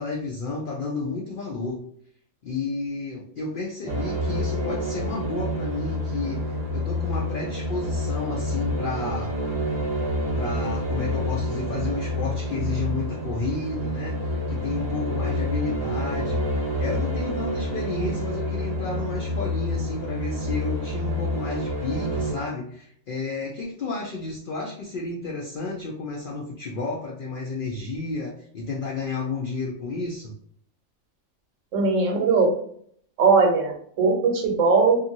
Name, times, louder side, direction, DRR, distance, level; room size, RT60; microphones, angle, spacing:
voice 1, 0.0-1.8 2.4-9.4 10.3-16.4 16.8-30.3, left 3 dB, 70° left, -1 dB, 0.5 m, -31 dB
sound 1, 3.9-22.3, left 1 dB, 40° right, 0.4 m, -28 dB
voice 2, 31.7-32.5 33.2-35.0, right 4 dB, 70° right, 1 dB, 1.0 m, -19 dB
2.6 x 2.6 x 2.7 m, 0.63 s
omnidirectional pair, 1.4 m